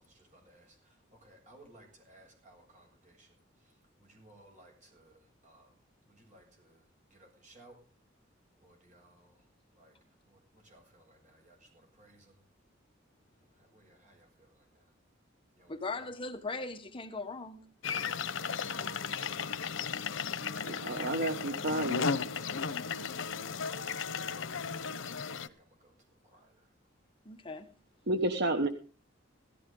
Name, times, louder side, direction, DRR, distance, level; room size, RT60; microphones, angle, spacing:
voice 1, 0.1-3.3 4.0-5.7 6.1-6.8 7.1-7.8 8.6-9.4 9.7-10.0 10.3-12.4 13.6-14.9 15.6-16.1 18.3-19.0 24.9-26.0 26.3-26.5, right 1 dB, 40° right, 7.3 m, -60 dB
voice 2, 15.7-17.6 27.2-27.7, left 3 dB, 25° left, 1.2 m, -39 dB
sound 1, 17.8-25.5, left 5 dB, 90° left, 0.9 m, -35 dB
voice 3, 20.6-22.1 28.1-28.7, right 1 dB, 60° right, 1.2 m, -31 dB
17.5 x 15.0 x 3.8 m
head